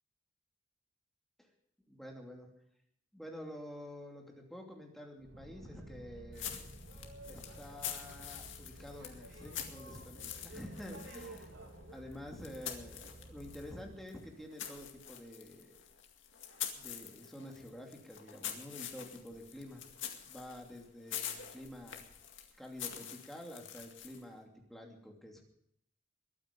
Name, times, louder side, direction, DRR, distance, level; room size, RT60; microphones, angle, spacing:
voice 1, 1.9-2.5 3.1-6.7 7.3-11.5 11.9-15.8 16.7-19.8 20.2-22.0 22.6-25.4, left 1 dB, ahead, 1 dB, 2.8 m, -49 dB
Boat Water vehicle, 5.2-14.0, right 1 dB, 80° right, 3.3 m, -52 dB
sound 1, 6.3-13.7 14.1-24.3, left 9 dB, 70° left, 2.2 m, -46 dB
22.0 x 9.4 x 5.3 m, 0.72 s
head